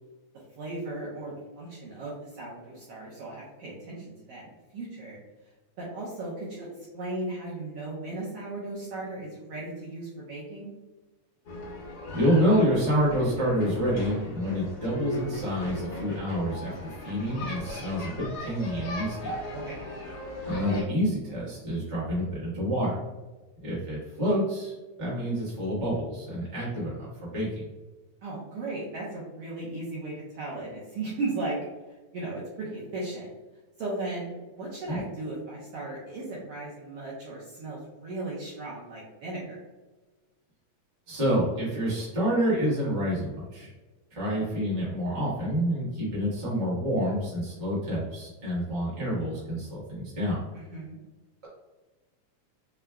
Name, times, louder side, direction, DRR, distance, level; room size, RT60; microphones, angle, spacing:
voice 1, 0.5-5.2 5.8-6.7 6.9-10.7 19.5-19.9 28.2-31.6 32.1-33.3 33.8-34.3 34.6-39.6 50.5-51.0, right 2 dB, 75° right, -5 dB, 1.4 m, -36 dB
sound 1, 11.5-20.8, left 1 dB, 65° left, 1.5 m, -37 dB
voice 2, 12.1-19.3 20.4-23.0 23.6-27.6 34.9-35.0 41.1-43.7 44.1-50.4, equal, 50° right, -8 dB, 0.5 m, -28 dB
4.9 x 2.3 x 2.2 m, 1.2 s
omnidirectional pair, 3.4 m